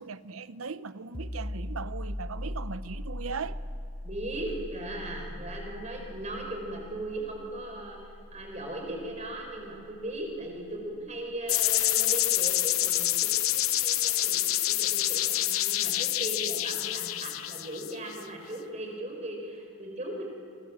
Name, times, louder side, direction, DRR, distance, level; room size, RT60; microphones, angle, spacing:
voice 1, 0.0-3.6, right 5 dB, 80° right, 0.8 m, -38 dB
sound 1, 1.1-12.6, left 1 dB, 25° left, 0.9 m, -41 dB
voice 2, 4.0-20.2, right 1 dB, 35° right, 4.9 m, -38 dB
sound 2, 11.5-18.2, left 14 dB, 85° left, 0.8 m, -27 dB
28.5 x 24.5 x 7.5 m
head